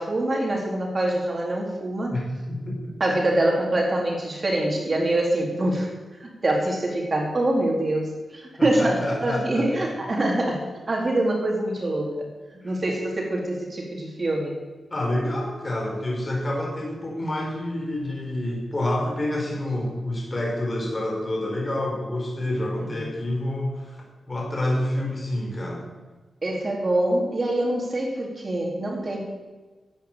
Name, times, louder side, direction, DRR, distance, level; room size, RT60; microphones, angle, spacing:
voice 1, 0.0-2.2 3.0-5.9 6.2-12.3 12.6-14.6 23.0-23.1 26.4-29.2, right 1 dB, 30° right, 0 dB, 4.0 m, -25 dB
voice 2, 2.1-2.9 8.6-9.9 12.6-12.7 14.9-24.0 24.3-25.8, left 1 dB, 25° left, -1 dB, 5.1 m, -28 dB
16.0 x 10.5 x 8.2 m, 1.3 s
wide cardioid pair, 135°, 0 cm